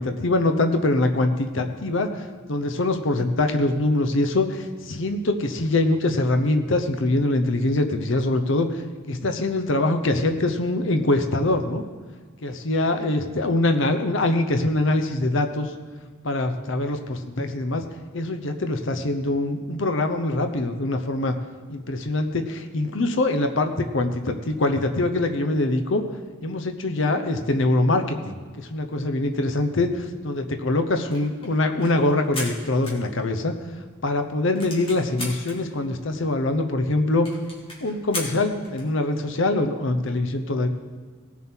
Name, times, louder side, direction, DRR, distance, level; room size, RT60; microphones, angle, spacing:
voice 1, 0.0-8.8 9.1-11.8 12.4-15.7 16.2-17.8 18.1-21.3 21.7-26.0 26.4-33.5 34.0-37.3 37.8-40.7, left 2 dB, 70° left, 7 dB, 0.8 m, -23 dB
sound 1, 31.1-33.6 34.0-34.1 34.3-35.6 36.2-36.3 36.4-36.5 36.8-36.9 37.2-38.9, left 1 dB, 30° left, 2.5 m, -36 dB
18.0 x 7.1 x 4.5 m, 1.5 s
head